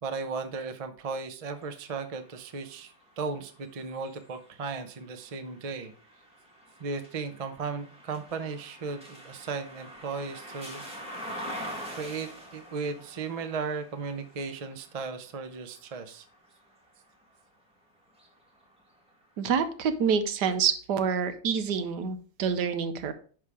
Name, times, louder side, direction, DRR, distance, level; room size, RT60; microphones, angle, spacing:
voice 1, 0.0-5.9 6.8-10.8 11.9-16.2, right 4 dB, 50° right, 7 dB, 0.4 m, -36 dB
sound 1, 1.5-17.5 18.0-19.3, equal, 5° right, 1.9 m, -46 dB
voice 2, 19.4-23.1, right 6 dB, 70° right, 9 dB, 1.3 m, -27 dB
10.5 x 3.7 x 4.8 m, 0.42 s
omnidirectional pair, 2.0 m